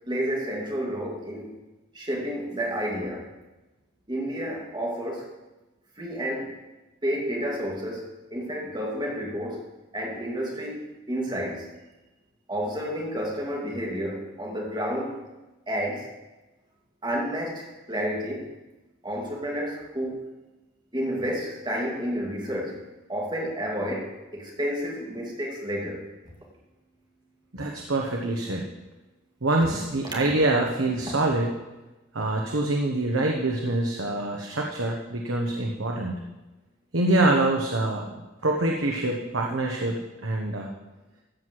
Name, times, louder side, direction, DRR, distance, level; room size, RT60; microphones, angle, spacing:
voice 1, 0.1-1.5 1.9-3.3 4.1-5.3 6.0-6.5 7.0-9.6 9.9-11.7 12.5-15.2 15.7-16.1 17.0-18.5 19.0-20.2 20.9-22.8 23.1-26.1, equal, 20° right, -2 dB, 2.4 m, -30 dB
voice 2, 27.5-28.6 29.4-31.5 32.1-36.2 36.9-38.1 38.4-40.0 40.2-40.7, right 2 dB, 90° right, 0 dB, 1.2 m, -25 dB
14.0 x 4.8 x 7.6 m, 1.1 s
head